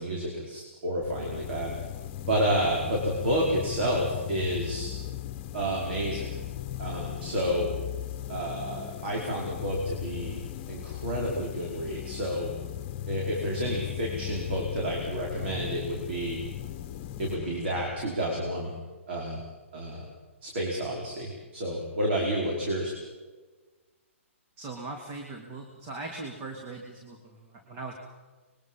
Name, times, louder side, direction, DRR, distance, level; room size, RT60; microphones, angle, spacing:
voice 1, 0.0-1.7 2.3-4.9 5.5-6.3 6.8-7.7 8.3-12.5 13.1-16.4 17.2-18.7 19.1-19.4 19.7-20.1 20.4-22.9, right 1 dB, 55° right, -1 dB, 5.1 m, -30 dB
sound 1, 1.0-18.5, left 13 dB, 35° left, 1.3 m, -37 dB
voice 2, 24.6-27.9, right 3 dB, 30° right, 2 dB, 3.0 m, -40 dB
25.0 x 22.5 x 5.6 m, 1.3 s
hypercardioid pair, 130°, 7 cm